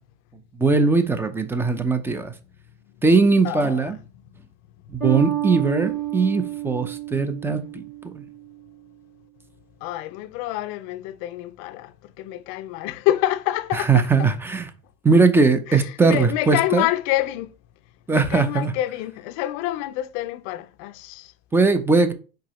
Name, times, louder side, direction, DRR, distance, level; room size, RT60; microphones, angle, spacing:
voice 1, 0.5-2.3 3.0-4.0 4.9-8.2 13.7-14.7 15.0-16.9 18.1-18.7 21.5-22.1, right 4 dB, 5° right, 0.5 m, -20 dB
voice 2, 3.4-3.8 9.8-14.1 15.7-17.5 18.1-21.3, left 15 dB, 45° left, 0.5 m, -27 dB
Bass guitar, 5.0-8.5, right 14 dB, 35° right, 2.7 m, -29 dB
4.6 x 3.7 x 3.1 m
hypercardioid pair, 115°, 30 cm